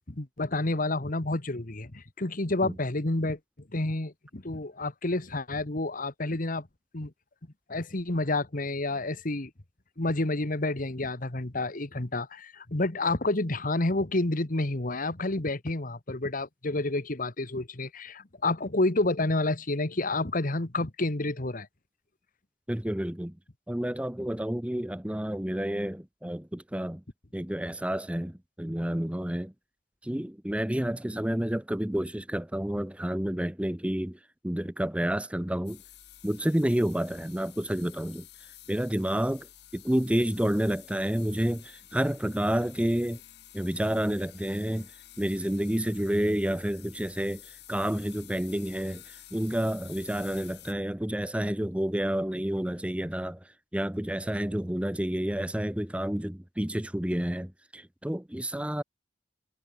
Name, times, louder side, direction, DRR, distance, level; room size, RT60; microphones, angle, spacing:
voice 1, 0.1-3.4 3.7-6.7 6.9-7.1 7.7-9.5 10.0-21.7, left 2 dB, 50° left, 1.6 m, -29 dB
voice 2, 22.7-23.4 23.7-27.0 27.3-29.5 30.0-35.8 36.2-38.3 38.7-39.5 39.7-43.2 43.5-44.9 45.2-58.8, right 1 dB, 5° right, 0.7 m, -29 dB
sound 1, 35.7-50.7, left 12 dB, 65° left, 5.9 m, -51 dB
head